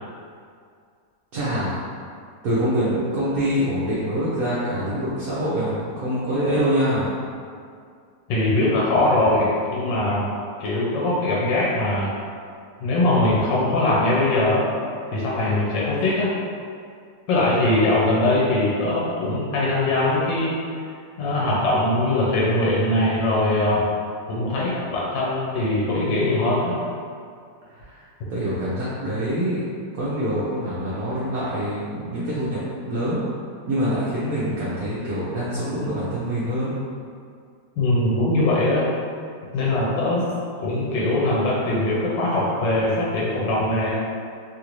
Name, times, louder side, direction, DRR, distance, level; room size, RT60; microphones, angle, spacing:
voice 1, 1.3-1.8 2.4-7.1 27.7-28.0 28.3-29.6 29.9-33.2 33.7-36.8, equal, 65° right, -9 dB, 0.9 m, -25 dB
voice 2, 8.3-10.2 10.6-12.1 12.8-14.7 15.1-16.3 17.3-20.6 21.2-23.9 24.3-26.7 37.8-38.9 39.5-40.2 40.6-43.9, left 2 dB, 90° left, -6 dB, 1.3 m, -21 dB
3.1 x 2.5 x 2.9 m, 2.2 s
omnidirectional pair, 2.0 m